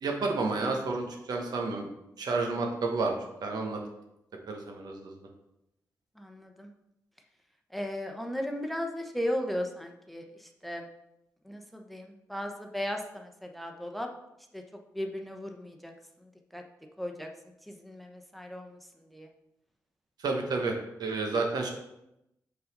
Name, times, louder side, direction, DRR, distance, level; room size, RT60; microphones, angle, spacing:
voice 1, 0.0-1.9 2.2-3.8 4.5-5.1 20.2-21.7, right 3 dB, 75° right, 2 dB, 1.1 m, -30 dB
voice 2, 6.2-6.7 7.7-10.8 11.4-14.1 14.5-14.6 14.9-15.9 16.5-16.6 17.0-17.3 17.7-18.8 19.1-19.3, equal, ahead, 4 dB, 0.9 m, -36 dB
5.4 x 4.0 x 5.3 m, 0.85 s
cardioid pair, 55°, 7 cm